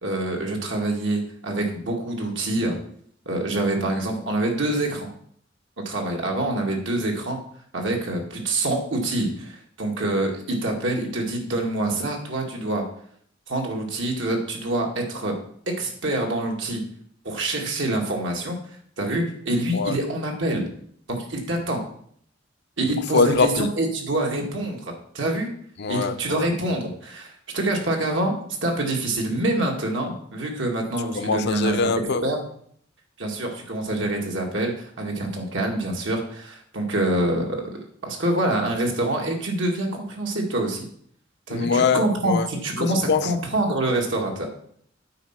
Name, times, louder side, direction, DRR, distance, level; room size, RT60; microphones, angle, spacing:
voice 1, 0.0-2.8 3.3-5.1 5.9-7.4 7.7-12.8 13.5-15.3 15.7-16.8 17.2-18.6 19.0-20.7 21.1-21.8 22.8-25.5 25.9-31.9 32.2-32.4 33.2-40.8 41.5-44.5, right 1 dB, 75° right, 2.0 m, -26 dB
voice 2, 23.1-23.7 25.8-26.5 31.1-32.2 41.5-42.5 42.8-43.3, left 4 dB, 60° left, 0.6 m, -23 dB
9.0 x 4.5 x 5.8 m
head